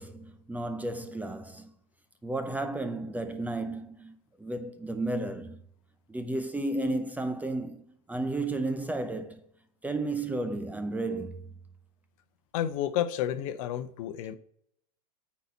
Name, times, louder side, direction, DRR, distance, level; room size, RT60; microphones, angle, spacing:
voice 1, 0.0-1.7 2.2-5.6 6.1-9.4 9.8-11.5, right 2 dB, 10° right, 0.6 m, -33 dB
voice 2, 12.5-14.4, left 11 dB, 55° left, 0.8 m, -30 dB
9.0 x 4.3 x 4.0 m
hypercardioid pair, 105°, 21 cm